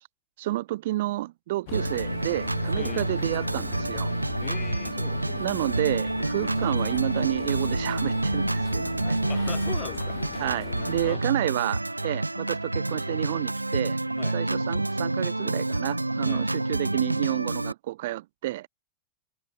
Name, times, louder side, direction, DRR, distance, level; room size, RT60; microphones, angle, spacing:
voice 1, 0.4-4.1 5.4-9.2 10.4-14.0 14.3-18.7, right 16 dB, 55° right, 0.5 m, -30 dB
sound 1, 1.7-11.2, left 19 dB, 50° left, 1.4 m, -39 dB
Organ, 1.7-17.7, right 2 dB, 85° right, 1.4 m, -28 dB
voice 2, 2.7-3.1 4.4-5.5 8.9-9.0 9.3-10.2 11.0-11.3 14.2-14.4 16.3-16.5, left 13 dB, 30° left, 3.0 m, -40 dB
figure-of-eight pair, 90°, 0 cm